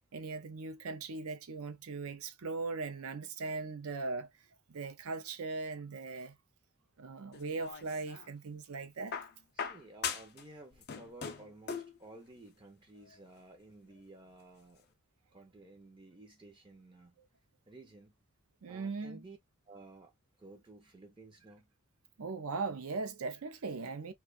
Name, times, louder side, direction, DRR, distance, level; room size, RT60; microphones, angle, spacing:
voice 1, 0.1-4.3 4.7-6.4 7.0-9.1 18.6-19.2 22.2-24.1, right 4 dB, 75° right, 0.5 m, -39 dB
sound 1, 7.3-8.3 9.1-10.4 10.7-12.0 13.1-13.2, left 6 dB, 45° left, 0.4 m, -40 dB
voice 2, 9.5-14.9 15.3-17.2 17.7-18.2 18.7-19.4 19.7-20.1 20.4-21.7, right 2 dB, 20° right, 0.5 m, -54 dB
2.5 x 2.3 x 2.3 m
head